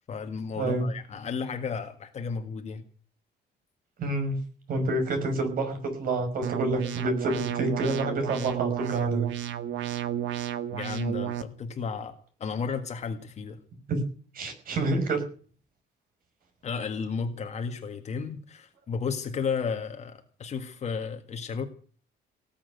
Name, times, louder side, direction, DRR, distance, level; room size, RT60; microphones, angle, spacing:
voice 1, 0.1-2.8 10.7-12.1 12.4-13.6 16.6-21.6, left 5 dB, 35° left, 5 dB, 1.8 m, -33 dB
voice 2, 4.0-4.4 4.7-9.3 13.9-14.0 14.3-15.2, right 2 dB, 50° right, 7 dB, 5.7 m, -28 dB
sound 1, 6.4-11.4, right 11 dB, 80° right, 1.6 m, -32 dB
18.5 x 7.7 x 9.4 m, 0.43 s
cardioid pair, 155°, 19 cm